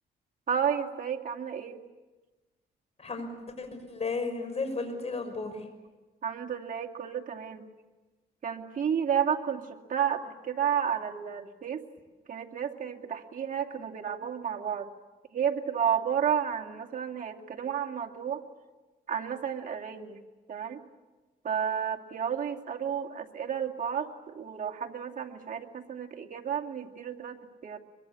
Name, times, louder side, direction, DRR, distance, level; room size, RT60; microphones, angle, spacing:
voice 1, 0.5-1.8 6.2-7.6 8.4-11.8 12.3-14.9 15.3-18.4 19.1-20.2 20.5-20.8 21.4-27.8, right 8 dB, 50° right, 2 dB, 2.4 m, -31 dB
voice 2, 3.0-5.7, left 3 dB, 35° left, 7 dB, 6.1 m, -34 dB
24.0 x 23.0 x 8.5 m, 1.2 s
cardioid pair, 85°, 17 cm